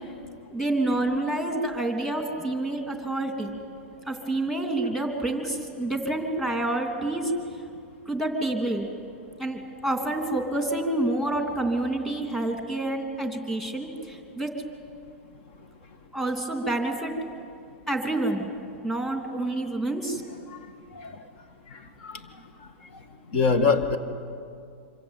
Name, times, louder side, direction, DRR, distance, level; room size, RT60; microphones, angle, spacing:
voice 1, 0.5-3.5 4.1-7.3 8.1-8.9 9.4-14.5 16.1-17.1 17.9-18.5 18.8-20.2, right 2 dB, 5° left, 3 dB, 3.1 m, -28 dB
voice 2, 20.9-21.2 21.7-22.2 22.6-22.7 23.3-24.0, left 4 dB, 60° left, 8 dB, 2.1 m, -25 dB
26.0 x 24.5 x 9.2 m, 2.4 s
supercardioid pair, 145°, 7 cm